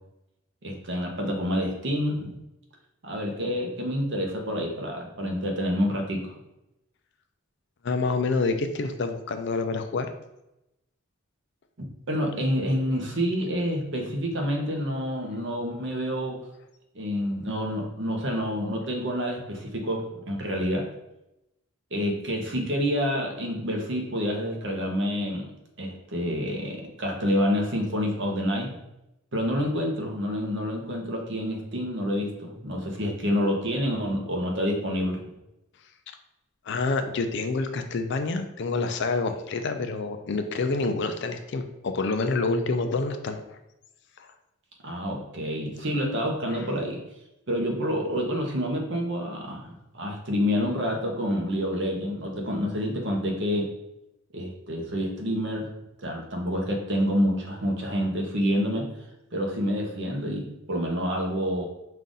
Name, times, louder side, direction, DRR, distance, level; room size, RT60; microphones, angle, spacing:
voice 1, 0.6-2.4 3.0-6.2 12.1-16.4 16.9-20.9 21.9-25.5 25.8-28.8 29.3-35.2 44.8-47.0 47.5-53.7 54.3-55.7 56.0-58.9 59.3-61.7, equal, 55° right, 1 dB, 0.9 m, -28 dB
voice 2, 7.8-10.1 36.7-43.6 44.2-44.3 46.5-46.6, left 3 dB, 50° left, 7 dB, 0.4 m, -27 dB
5.4 x 2.5 x 3.8 m, 0.90 s
head